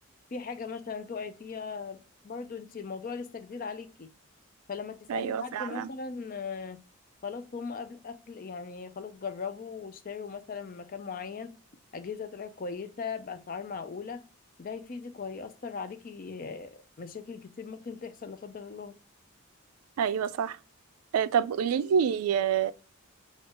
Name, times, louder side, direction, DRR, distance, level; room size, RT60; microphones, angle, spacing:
voice 1, 0.3-4.1 4.7-6.8 7.2-11.6 11.9-14.2 14.6-18.9, left 5 dB, 40° left, 0.4 m, -39 dB
voice 2, 5.1-5.9 20.0-20.6 21.1-22.7, right 7 dB, 85° right, 0.3 m, -27 dB
4.3 x 2.4 x 2.9 m
head